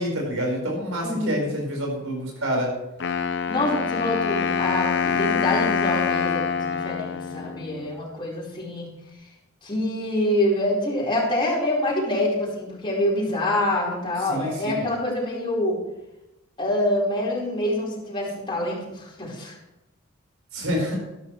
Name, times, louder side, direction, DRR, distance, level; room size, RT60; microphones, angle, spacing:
voice 1, 0.0-2.7 14.3-14.9 20.5-21.0, equal, 80° right, -1 dB, 5.0 m, -27 dB
voice 2, 1.0-1.4 3.5-8.9 9.6-15.8 16.6-19.5, left 1 dB, 25° left, -5 dB, 4.6 m, -26 dB
Wind instrument woodwind instrument, 3.0-8.0, left 6 dB, 60° left, 0.7 m, -25 dB
13.0 x 12.5 x 3.3 m, 0.95 s
head